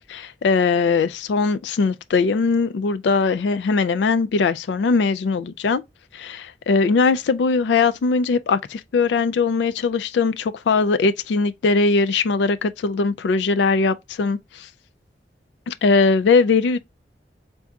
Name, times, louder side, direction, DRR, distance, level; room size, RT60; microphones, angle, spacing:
voice 1, 0.1-5.8 6.1-14.7 15.7-16.8, left 4 dB, 80° left, 0.3 m, -20 dB
3.5 x 2.6 x 4.4 m
head